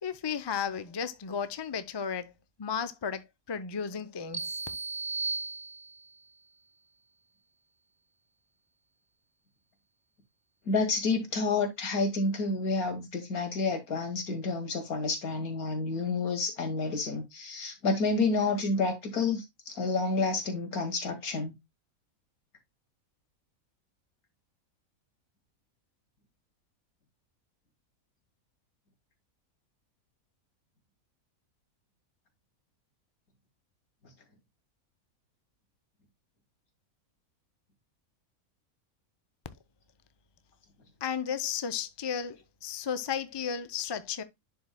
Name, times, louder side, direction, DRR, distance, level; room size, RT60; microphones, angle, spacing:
voice 1, 0.0-2.3 2.6-4.6 41.0-44.2, left 7 dB, 45° left, 0.3 m, -34 dB
sound 1, 4.3-6.2, right 4 dB, 15° right, 0.6 m, -35 dB
voice 2, 10.7-21.5, left 3 dB, 75° left, 2.5 m, -29 dB
11.0 x 4.6 x 2.2 m
omnidirectional pair, 1.5 m